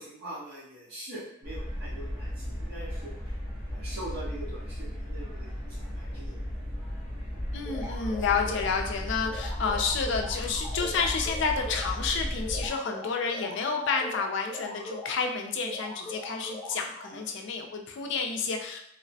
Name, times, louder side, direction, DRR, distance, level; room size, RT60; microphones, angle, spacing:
voice 1, 0.0-3.1 3.7-6.6 17.1-17.2, right 1 dB, 50° right, -9 dB, 1.1 m, -43 dB
sound 1, 1.4-12.7, equal, 80° right, 1.4 m, -35 dB
voice 2, 7.5-18.8, left 5 dB, 65° left, 3 dB, 0.4 m, -30 dB
sound 2, 7.7-8.9 9.3-12.1 12.5-15.3 15.7-17.2, left 1 dB, 20° left, 0.8 m, -41 dB
3.0 x 2.0 x 2.6 m, 0.73 s
head